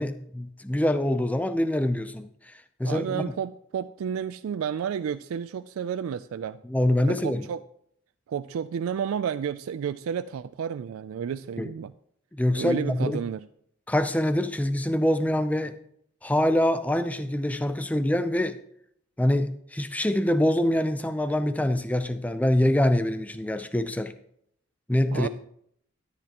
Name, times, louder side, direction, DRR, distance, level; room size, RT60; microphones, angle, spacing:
voice 1, 0.0-2.5 2.8-3.2 6.7-7.5 11.6-11.7 12.3-13.2 13.9-15.7 16.2-18.6 19.2-24.1 24.9-25.3, left 1 dB, 5° left, 10 dB, 0.5 m, -25 dB
voice 2, 2.8-6.6 7.0-7.6 8.3-11.9 12.5-13.5 25.1-25.3, right 7 dB, 85° right, 12 dB, 0.3 m, -31 dB
13.0 x 9.9 x 2.9 m, 0.70 s
head